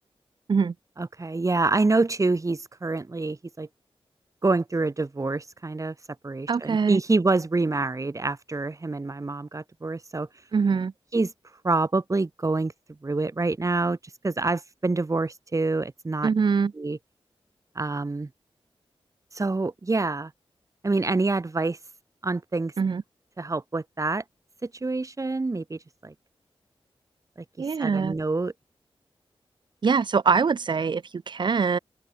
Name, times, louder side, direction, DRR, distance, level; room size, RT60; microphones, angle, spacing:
voice 1, 1.0-3.7 4.4-5.9 6.2-10.3 11.1-11.3 11.6-12.7 13.0-14.0 14.2-16.3 16.7-17.0 17.7-18.3 19.3-20.3 20.8-21.8 22.2-22.7 23.4-24.2 24.6-26.1 27.4-28.5, right 3 dB, 30° right, 3.2 m, -26 dB
voice 2, 6.5-7.0 10.5-10.9 16.2-16.7 22.8-23.0 27.6-28.1 29.8-31.8, right 5 dB, 50° right, 0.6 m, -23 dB
open air
wide cardioid pair, 100°, 10 cm